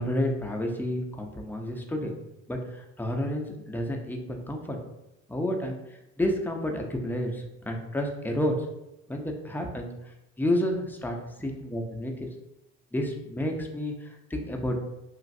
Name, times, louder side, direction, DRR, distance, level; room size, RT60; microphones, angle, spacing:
voice 1, 0.0-2.1 2.5-4.8 5.3-5.8 6.2-8.5 9.1-9.9 10.4-12.3 12.9-14.8, left 1 dB, 5° left, 2 dB, 0.4 m, -30 dB
3.1 x 2.5 x 2.5 m, 0.90 s
supercardioid pair, 75°, 36 cm